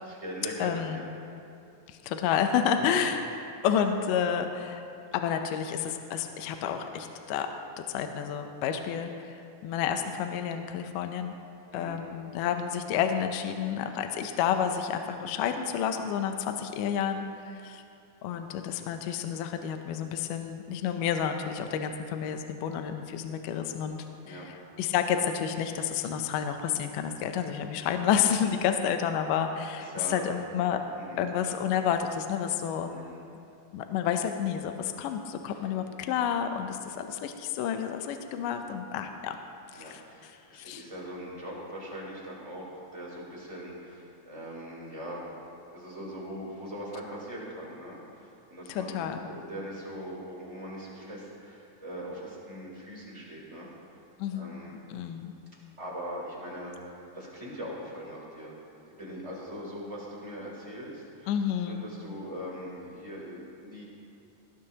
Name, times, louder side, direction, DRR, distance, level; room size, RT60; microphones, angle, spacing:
voice 1, 0.0-1.1 2.7-2.9 11.7-12.0 24.2-24.5 29.8-30.3 30.9-31.2 32.8-33.2 35.5-35.7 39.7-45.2 45.7-53.7 54.3-54.7 55.8-58.5 59.0-61.3 61.6-63.8, equal, 10° right, -5 dB, 3.2 m, -41 dB
voice 2, 0.6-1.0 2.0-3.2 3.6-4.8 5.1-7.5 7.9-9.3 9.6-11.3 11.7-17.8 18.2-24.0 24.3-24.4 24.8-30.8 31.2-32.9 33.7-39.4 39.7-40.0 40.5-40.8 48.7-49.3 54.2-54.5 54.9-55.3 61.3-61.8, left 8 dB, 75° left, 6 dB, 2.1 m, -30 dB
18.5 x 15.5 x 2.9 m, 2.6 s
omnidirectional pair, 4.2 m